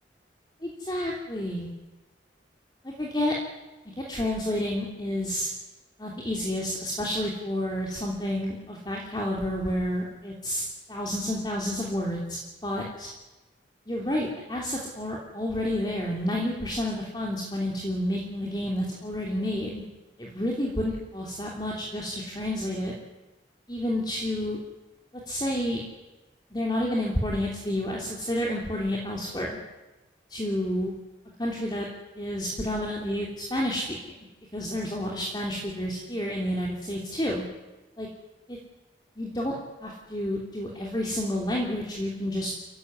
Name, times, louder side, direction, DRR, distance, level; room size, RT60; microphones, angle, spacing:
voice 1, 0.6-1.7 2.8-3.3 4.0-5.5 6.0-13.1 13.9-19.8 20.2-22.9 23.7-24.6 25.3-25.8 26.5-29.6 30.3-30.9 31.4-31.9 32.2-34.1 34.5-37.4 38.0-38.1 38.5-38.6 39.2-39.5 39.8-42.5, left 1 dB, 25° left, -2 dB, 3.1 m, -30 dB
28.0 x 16.0 x 9.7 m, 1.1 s
head